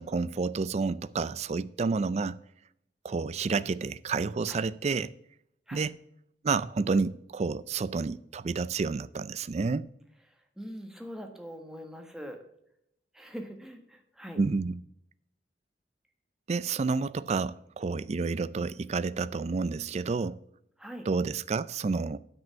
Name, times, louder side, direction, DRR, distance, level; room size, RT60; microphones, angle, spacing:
voice 1, 0.0-2.4 3.0-5.1 5.7-5.9 6.4-9.9 14.4-14.8 16.5-20.4 21.1-22.2, right 4 dB, 40° right, 0.4 m, -30 dB
voice 2, 10.3-12.4 13.1-14.4 20.8-21.1, equal, 5° right, 1.4 m, -43 dB
9.3 x 5.3 x 7.0 m
head